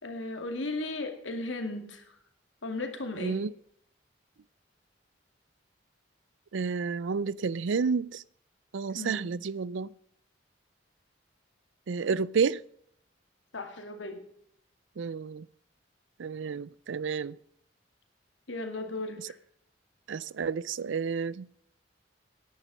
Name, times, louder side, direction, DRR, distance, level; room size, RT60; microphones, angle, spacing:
voice 1, 0.0-2.0 2.6-3.4 8.9-9.3 13.5-14.2 18.5-19.3, left 2 dB, 85° left, 2.2 m, -36 dB
voice 2, 3.2-3.5 6.5-8.2 8.7-9.9 11.9-12.6 15.0-15.5 16.2-17.4 19.2-19.3 20.1-21.5, right 5 dB, 85° right, 0.4 m, -30 dB
10.5 x 10.0 x 6.1 m
head